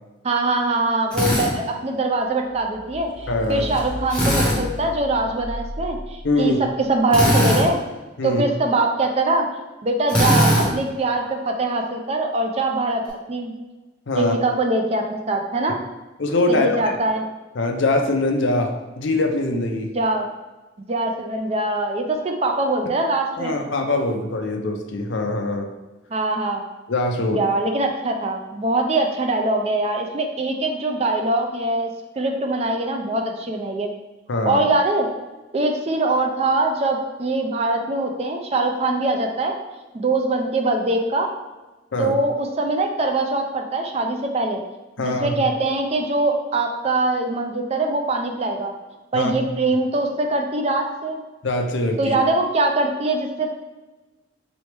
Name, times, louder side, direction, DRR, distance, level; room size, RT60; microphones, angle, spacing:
voice 1, 0.2-6.5 6.9-7.8 8.2-13.5 14.2-15.8 16.5-17.2 19.9-20.3 20.9-23.5 26.1-26.6 27.3-31.9 32.2-33.9 34.4-35.1 35.5-39.5 39.9-41.3 42.0-44.6 45.0-48.7 49.1-51.2 52.0-53.6, right 2 dB, 30° right, 3 dB, 0.4 m, -22 dB
Drill, 1.1-1.5 4.1-4.6 7.1-7.7 10.1-10.7, equal, 5° left, 0.8 m, -18 dB
sound 1, 2.5-6.7, equal, 85° left, 1.0 m, -34 dB
voice 2, 3.3-3.7 6.2-6.6 8.2-8.4 14.1-14.3 16.2-16.9 17.5-19.9 23.4-25.7 26.9-27.5 34.3-34.6 41.9-42.1 45.0-45.4 49.1-49.3 51.4-52.2, left 2 dB, 70° left, 4 dB, 0.5 m, -23 dB
4.2 x 3.0 x 3.2 m, 1.1 s
head